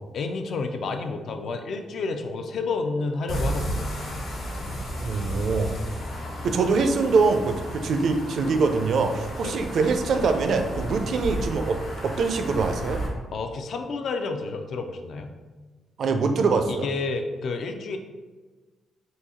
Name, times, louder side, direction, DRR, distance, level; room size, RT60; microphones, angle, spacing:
voice 1, 0.1-4.0 9.4-9.6 13.3-15.3 16.7-18.0, left 3 dB, 60° left, 6 dB, 0.4 m, -30 dB
sound 1, 3.3-13.1, equal, 80° left, 1.3 m, -33 dB
voice 2, 5.0-5.7 6.4-11.8 12.0-13.0 16.0-16.9, right 4 dB, 60° right, 6 dB, 0.4 m, -23 dB
3.9 x 2.7 x 4.1 m, 1.3 s
cardioid pair, 145°, 0 cm